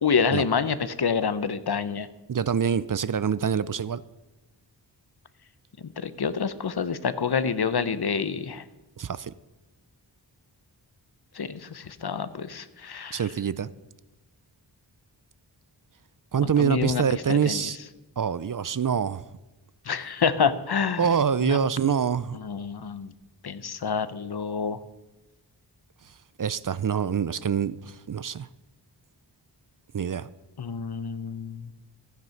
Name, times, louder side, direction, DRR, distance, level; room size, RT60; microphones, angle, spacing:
voice 1, 0.0-2.1 5.8-8.6 11.3-13.3 16.4-17.7 19.9-21.0 21.4-21.6 22.4-23.1 23.4-24.8 30.6-31.7, left 6 dB, 60° left, 13 dB, 0.9 m, -27 dB
voice 2, 2.3-4.0 9.0-9.3 13.1-13.7 16.3-17.8 18.2-19.2 21.0-22.4 26.4-28.5 29.9-30.3, right 7 dB, 45° right, 17 dB, 0.5 m, -25 dB
15.0 x 9.5 x 5.8 m, 1.1 s
wide cardioid pair, 80°, 44 cm